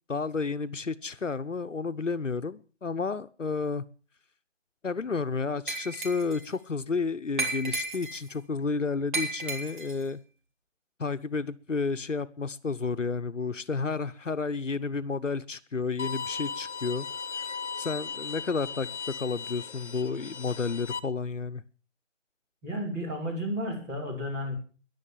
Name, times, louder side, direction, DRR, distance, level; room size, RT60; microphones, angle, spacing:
voice 1, 0.1-3.8 4.8-10.2 11.0-17.1 17.8-18.9 19.2-21.6, left 4 dB, 80° left, 12 dB, 1.1 m, -31 dB
Glass, 5.7-6.5 7.4-8.3 9.1-10.0, right 2 dB, 40° right, 3.3 m, -33 dB
Bowed string instrument, 16.0-21.0, left 6 dB, 65° left, 1.5 m, -37 dB
voice 2, 22.6-24.5, equal, 15° right, -3 dB, 4.3 m, -32 dB
14.5 x 11.0 x 7.4 m, 0.40 s
figure-of-eight pair, 165°, 37 cm